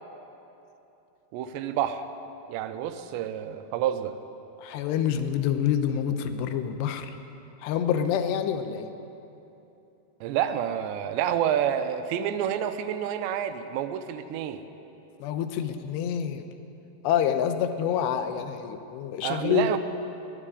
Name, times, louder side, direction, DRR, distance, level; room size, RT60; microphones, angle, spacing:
voice 1, 1.3-2.1 2.5-4.2 10.2-14.6 19.2-19.8, right 10 dB, 85° right, 9 dB, 2.9 m, -28 dB
voice 2, 4.6-7.1 7.6-8.9 15.2-16.4 17.0-19.7, left 8 dB, 85° left, 9 dB, 2.9 m, -27 dB
18.5 x 7.5 x 9.9 m, 2.9 s
omnidirectional pair, 5.0 m